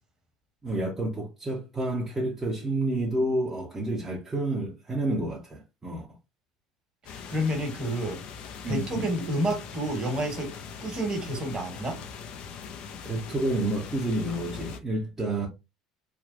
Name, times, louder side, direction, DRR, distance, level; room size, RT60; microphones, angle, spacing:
voice 1, 0.6-6.1 8.6-9.1 13.0-15.5, right 1 dB, 20° right, 0.9 m, -29 dB
sound 1, 7.0-14.8, left 6 dB, 50° left, 0.5 m, -41 dB
voice 2, 7.1-8.2 8.7-10.5 10.8-12.0, right 1 dB, 35° right, 1.4 m, -29 dB
3.5 x 2.4 x 2.5 m
figure-of-eight pair, 65°, 2 cm